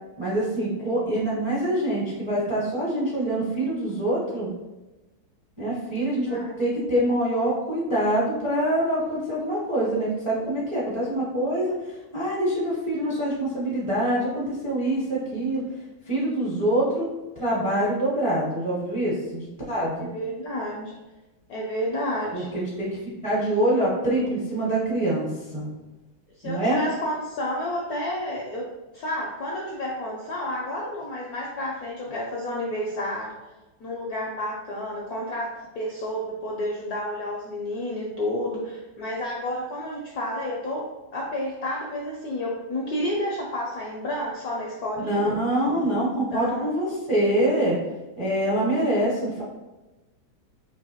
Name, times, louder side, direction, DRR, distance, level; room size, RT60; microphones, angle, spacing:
voice 1, 0.2-4.5 5.6-11.8 12.1-15.6 16.1-17.1 17.4-20.1 22.3-22.9 23.2-25.7 26.4-26.8 45.0-47.8 48.2-49.4, right 1 dB, 40° right, -7 dB, 0.4 m, -25 dB
voice 2, 6.1-6.5 19.9-20.9 21.5-22.5 26.4-28.7 28.9-33.3 33.8-40.9 41.1-45.4 46.3-46.8, left 1 dB, 75° left, -2 dB, 0.8 m, -30 dB
4.5 x 2.7 x 2.8 m, 1.1 s
omnidirectional pair, 2.2 m